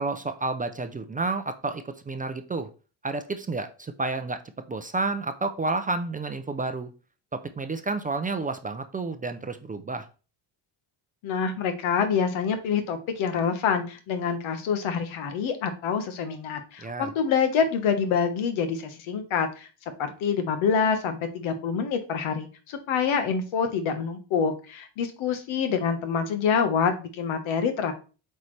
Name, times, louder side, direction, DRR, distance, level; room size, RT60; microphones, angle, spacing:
voice 1, 0.0-2.7 3.0-4.4 4.7-6.9 7.3-10.1 16.8-17.1, right 3 dB, 20° right, 8 dB, 0.4 m, -30 dB
voice 2, 11.2-19.7 20.0-27.9, left 6 dB, 90° left, 7 dB, 1.4 m, -26 dB
8.1 x 4.2 x 3.3 m, 0.35 s
cardioid pair, 145°, 46 cm